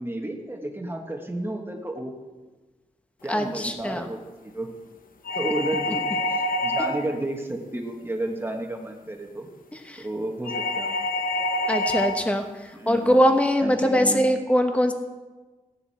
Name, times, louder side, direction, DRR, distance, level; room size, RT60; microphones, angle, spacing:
voice 1, 0.0-2.1 3.2-4.7 5.3-9.5 10.0-10.9 12.7-13.2 13.6-14.2, right 1 dB, 15° right, 2 dB, 1.6 m, -32 dB
voice 2, 3.3-4.1 9.7-10.0 11.6-12.4 12.9-14.9, equal, 10° left, 5 dB, 1.1 m, -22 dB
sound 1, 5.2-7.2 10.4-12.3, left 1 dB, 85° left, 1.0 m, -26 dB
16.0 x 11.0 x 4.3 m, 1.2 s
wide cardioid pair, 115°, 14 cm